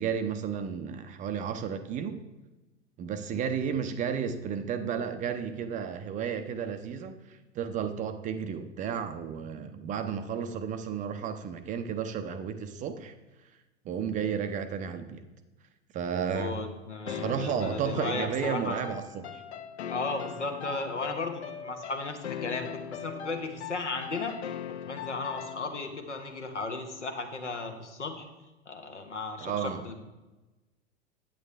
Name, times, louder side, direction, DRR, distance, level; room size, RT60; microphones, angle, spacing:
voice 1, 0.0-2.2 3.0-13.1 13.9-15.2 15.9-16.6 17.1-19.4 29.4-29.8, right 7 dB, 20° right, 9 dB, 0.5 m, -33 dB
voice 2, 16.3-18.8 19.9-24.4 24.8-28.3 28.7-30.0, left 3 dB, 80° left, 5 dB, 1.1 m, -35 dB
sound 1, 17.1-25.9, left 8 dB, 65° left, 0.7 m, -40 dB
9.0 x 8.6 x 3.3 m, 1.1 s
figure-of-eight pair, 85°, 35 cm